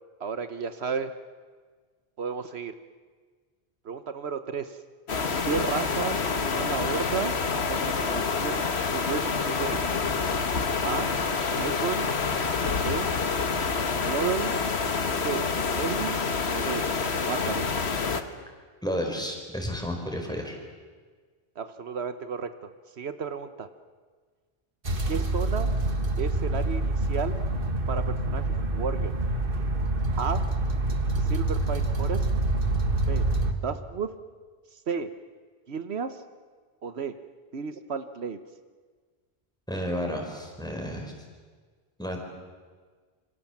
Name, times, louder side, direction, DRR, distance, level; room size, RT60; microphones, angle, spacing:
voice 1, 0.2-1.1 2.2-2.7 3.8-4.8 5.4-7.4 7.7-8.7 8.9-9.8 10.8-11.1 11.5-12.1 12.8-13.1 14.1-14.7 15.2-15.4 15.7-17.7 21.6-22.7 23.0-23.7 25.1-25.7 26.2-27.4 27.9-28.5 28.7-29.1 30.2-30.4 31.2-32.3 33.1-33.3 33.6-34.1 34.7-35.1 35.7-36.2 36.8-37.1 37.5-38.4, right 6 dB, 75° right, 10 dB, 1.3 m, -32 dB
sound 1, 5.1-18.2, left 4 dB, 75° left, 1.7 m, -27 dB
voice 2, 18.8-20.5 39.7-41.1 42.0-42.2, equal, 5° left, 1 dB, 5.0 m, -31 dB
sound 2, 24.8-33.5, right 2 dB, 55° right, 1.9 m, -26 dB
27.0 x 25.5 x 7.3 m, 1.5 s
omnidirectional pair, 1.1 m